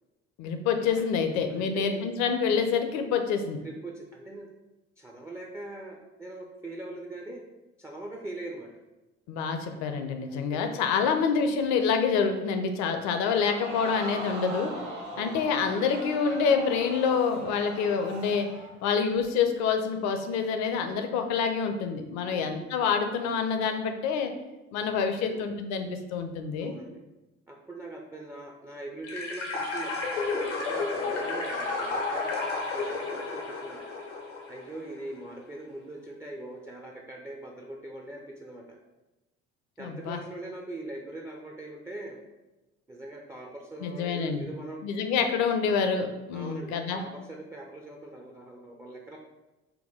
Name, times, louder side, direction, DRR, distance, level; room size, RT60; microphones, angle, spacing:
voice 1, 0.4-3.6 9.3-14.7 15.2-18.5 18.8-24.3 24.7-26.8 39.8-40.2 43.8-44.4 44.8-47.0, left 6 dB, 50° left, 6 dB, 0.5 m, -27 dB
voice 2, 1.6-2.1 3.6-4.5 5.0-7.4 7.8-8.7 9.7-9.8 10.3-10.8 15.1-15.3 22.3-22.6 25.2-25.5 26.6-27.0 27.5-29.9 30.7-33.8 34.5-38.8 39.8-42.2 42.9-44.8 46.3-49.2, right 2 dB, 10° right, -1 dB, 0.3 m, -41 dB
Crowd, 13.3-18.7 19.2-19.3, right 1 dB, 70° right, 0.9 m, -40 dB
sound 1, 29.0-34.8, left 3 dB, 80° left, 0.8 m, -32 dB
4.4 x 2.2 x 3.5 m, 1.1 s
figure-of-eight pair, 50°, 36 cm